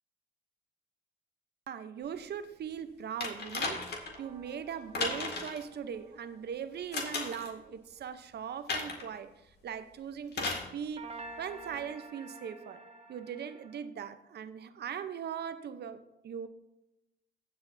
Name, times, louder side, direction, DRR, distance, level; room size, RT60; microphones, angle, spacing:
voice 1, 1.7-9.3 9.6-12.8 13.1-16.5, right 7 dB, 55° right, 11 dB, 0.7 m, -40 dB
sound 1, 3.2-4.2 4.9-5.6 6.9-7.5 8.7-9.1 10.3-10.7 11.7-11.8, left 3 dB, 55° left, 2.1 m, -35 dB
sound 2, 4.1-7.7 11.0-13.8, right 3 dB, 30° right, 1.0 m, -50 dB
17.0 x 7.8 x 2.7 m, 0.93 s
cardioid pair, 90°, 20 cm